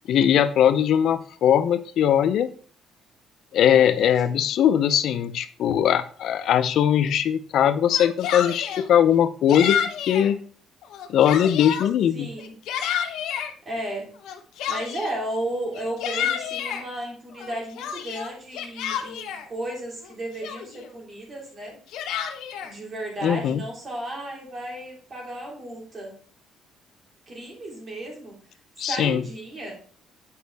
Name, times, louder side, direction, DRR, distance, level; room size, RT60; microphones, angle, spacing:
voice 1, 0.1-2.5 3.5-9.8 10.1-10.4 11.1-12.3 23.2-23.6 28.8-29.2, left 9 dB, 65° left, 11 dB, 0.5 m, -20 dB
voice 2, 3.6-4.4 12.1-12.5 13.6-14.1 14.7-21.7 22.6-26.1 27.3-28.3 28.8-29.7, right 1 dB, 35° right, -2 dB, 3.1 m, -34 dB
Yell, 7.8-8.9 9.5-10.3 10.8-11.9 12.4-13.5 14.2-15.2 15.7-16.8 17.4-19.5 20.0-20.1 20.4-20.9 21.7-22.7, left 8 dB, 80° left, 0.9 m, -29 dB
8.4 x 5.2 x 3.4 m, 0.44 s
cardioid pair, 125°, 0 cm